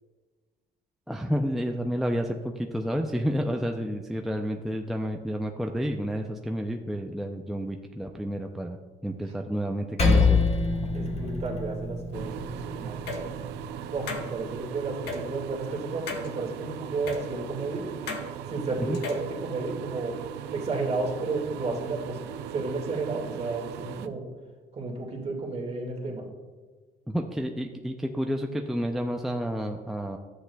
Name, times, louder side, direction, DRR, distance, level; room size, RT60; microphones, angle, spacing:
voice 1, 1.1-8.8 9.0-10.4 18.9-19.0 27.1-30.2, equal, ahead, 3 dB, 0.4 m, -30 dB
Percussion, 10.0-14.8, left 4 dB, 40° left, 1.2 m, -27 dB
voice 2, 10.9-17.9 18.5-20.2 20.5-24.3 24.7-26.3, right 3 dB, 40° right, 0 dB, 1.9 m, -32 dB
sound 1, 12.1-24.1, right 10 dB, 90° right, 0.5 m, -39 dB
sound 2, 13.1-13.2 14.1-14.2 15.1-15.2 16.1-16.3 17.1-17.2 18.1-18.2 18.9-19.3, left 4 dB, 85° left, 1.2 m, -33 dB
11.5 x 7.9 x 2.3 m, 1.4 s
cardioid pair, 110°, 17 cm